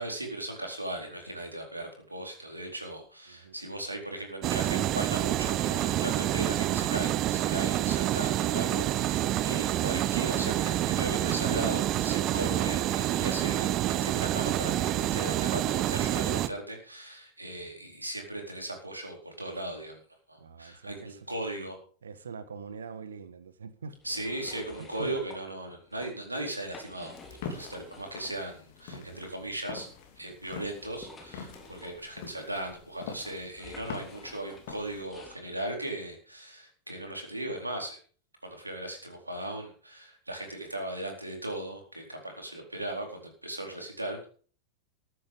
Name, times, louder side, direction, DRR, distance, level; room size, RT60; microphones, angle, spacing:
voice 1, 0.0-20.0 20.3-21.8 24.0-27.2 27.4-29.9 30.2-38.0 38.4-44.3, right 1 dB, 85° right, 4.3 m, -37 dB
sound 1, 4.4-16.5, right 13 dB, 35° right, 0.9 m, -28 dB
voice 2, 20.4-21.3 22.0-24.0 24.8-25.1 28.9-29.2, right 5 dB, 70° right, 1.4 m, -44 dB
sound 2, 24.0-25.4 25.8-26.1 26.5-28.4 28.7-28.8 29.8-35.4, left 3 dB, 20° left, 4.1 m, -51 dB
sound 3, 27.1-35.0, left 5 dB, 50° left, 3.3 m, -45 dB
14.5 x 11.5 x 5.5 m
figure-of-eight pair, 90°, 0 cm